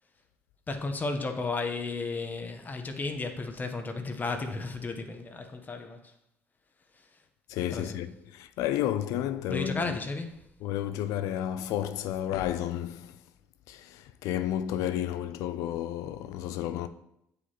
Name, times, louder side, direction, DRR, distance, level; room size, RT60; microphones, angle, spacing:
voice 1, 0.7-6.1 6.9-7.1 7.7-8.0 9.5-10.4, left 3 dB, 30° left, 0.9 m, -34 dB
voice 2, 7.5-10.0 10.6-13.2 13.7-16.9, left 11 dB, 80° left, 0.4 m, -32 dB
7.9 x 5.0 x 3.0 m
supercardioid pair, 70°, 6 cm